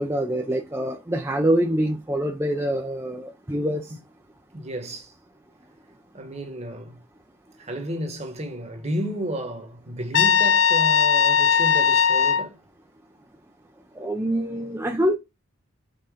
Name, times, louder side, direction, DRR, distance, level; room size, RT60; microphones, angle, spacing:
voice 1, 0.0-3.9 14.0-15.2, right 1 dB, 10° right, 0.6 m, -25 dB
voice 2, 4.5-5.1 6.1-7.0 7.6-12.6, equal, 30° right, 1.3 m, -32 dB
Trumpet, 10.1-12.5, left 7 dB, 60° left, 0.5 m, -18 dB
5.8 x 4.0 x 5.1 m
head